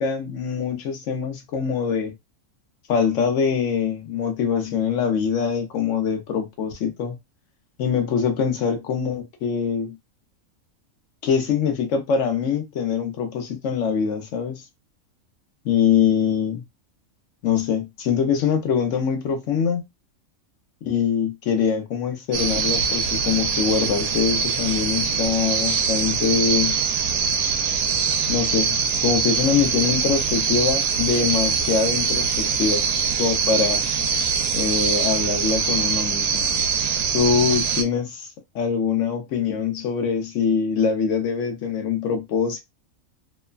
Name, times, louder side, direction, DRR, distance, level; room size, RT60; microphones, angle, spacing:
voice 1, 0.0-2.1 2.9-7.2 7.8-9.9 11.2-14.6 15.6-16.6 17.4-19.8 20.8-26.7 28.3-28.7 29.0-32.8 33.2-33.8 34.5-36.4 37.1-38.3 38.5-42.6, left 6 dB, 65° left, 1.0 m, -23 dB
sound 1, 22.3-37.8, right 6 dB, 80° right, 1.0 m, -23 dB
3.0 x 2.1 x 2.3 m
omnidirectional pair, 1.5 m